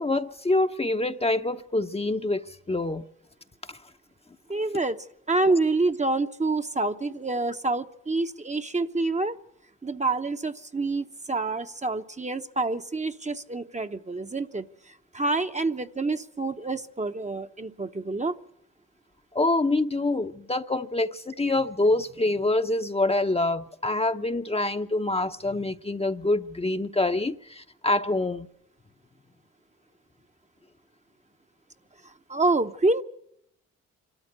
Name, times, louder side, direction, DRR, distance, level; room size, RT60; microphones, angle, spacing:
voice 1, 0.0-3.0 19.3-28.5, left 2 dB, 15° left, 0.8 m, -26 dB
voice 2, 4.5-9.4 9.8-18.4 32.0-33.0, right 3 dB, 20° right, 0.8 m, -27 dB
25.5 x 13.0 x 8.0 m
supercardioid pair, 50°, 34 cm